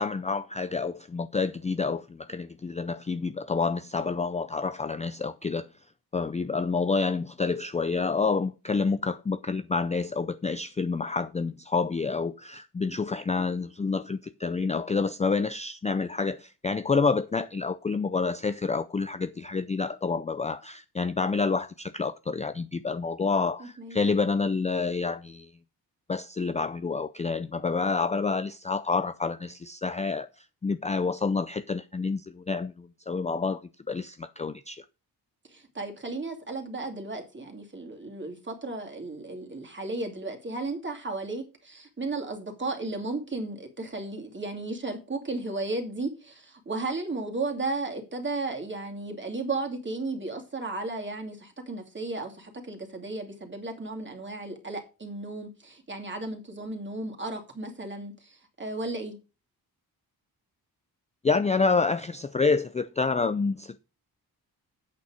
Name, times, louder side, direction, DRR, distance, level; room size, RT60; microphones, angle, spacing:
voice 1, 0.0-5.7 6.1-25.5 26.1-34.8 61.2-63.8, left 4 dB, 20° left, 0.4 m, -28 dB
voice 2, 23.6-24.0 35.5-59.2, right 2 dB, 30° right, 2.6 m, -34 dB
8.4 x 6.8 x 4.9 m
cardioid pair, 100°, 39 cm